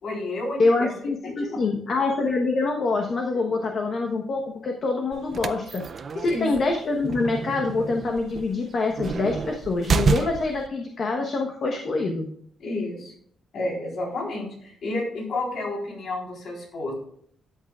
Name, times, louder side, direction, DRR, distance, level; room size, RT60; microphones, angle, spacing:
voice 1, 0.0-0.9 1.2-1.6 6.3-6.5 12.6-13.1 13.5-16.9, left 2 dB, 65° left, -1 dB, 3.9 m, -31 dB
voice 2, 0.6-12.3, left 3 dB, 45° left, 2 dB, 1.0 m, -25 dB
sound 1, 5.1-10.7, right 5 dB, 40° right, 0.4 m, -29 dB
13.0 x 8.3 x 2.4 m, 0.64 s
cardioid pair, 145°, 0 cm